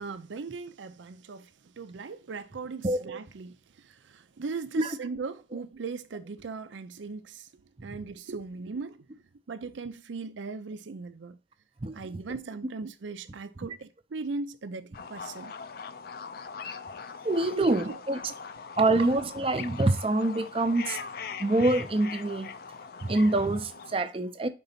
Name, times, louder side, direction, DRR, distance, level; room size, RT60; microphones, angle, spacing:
voice 1, 0.0-7.5 7.8-9.1 9.5-11.4 11.9-15.5 17.5-18.0 18.9-19.1, right 4 dB, 85° right, 0.5 m, -38 dB
sound 1, 14.9-23.9, left 6 dB, 55° left, 0.5 m, -41 dB
voice 2, 17.2-18.2 18.8-21.0 21.4-22.5 23.0-24.5, right 2 dB, 30° right, 0.6 m, -25 dB
5.3 x 3.9 x 5.6 m
head